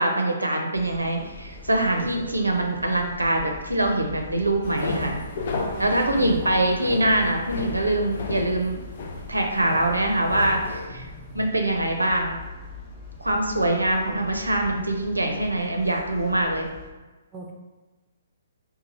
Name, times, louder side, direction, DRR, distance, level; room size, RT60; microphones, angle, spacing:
voice 1, 0.0-5.2 5.8-8.8 9.3-10.6 10.9-11.0 11.3-12.4 13.2-16.7, right 1 dB, 85° right, 3 dB, 0.5 m, -23 dB
sound 1, 0.7-16.9, left 3 dB, 15° left, 0.8 m, -42 dB
sound 2, 4.6-10.9, left 3 dB, 50° left, 0.5 m, -33 dB
voice 2, 5.5-6.5 9.7-10.0 10.4-11.5 17.3-17.5, right 2 dB, 20° right, 1 dB, 0.6 m, -42 dB
3.0 x 2.3 x 4.0 m, 1.2 s
figure-of-eight pair, 130°, 0 cm